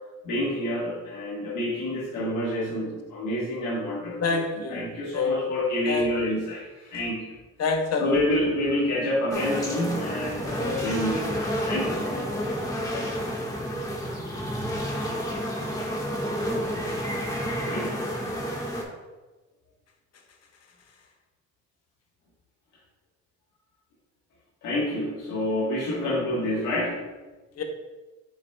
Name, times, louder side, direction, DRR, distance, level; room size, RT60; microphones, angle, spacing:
voice 1, 0.2-7.4 8.0-11.3 11.6-12.6 17.6-18.0 24.6-27.0, left 1 dB, 80° left, -6 dB, 1.5 m, -28 dB
voice 2, 4.2-4.8 5.1-5.3 5.9-6.4 7.6-8.1 10.5-10.9 12.1-12.6 12.9-13.3 27.6-27.7, left 4 dB, 55° left, 3 dB, 1.1 m, -29 dB
sound 1, 9.3-18.8, equal, 10° left, 1.5 m, -30 dB
6.7 x 6.6 x 2.3 m, 1.2 s
cardioid pair, 90°, 30 cm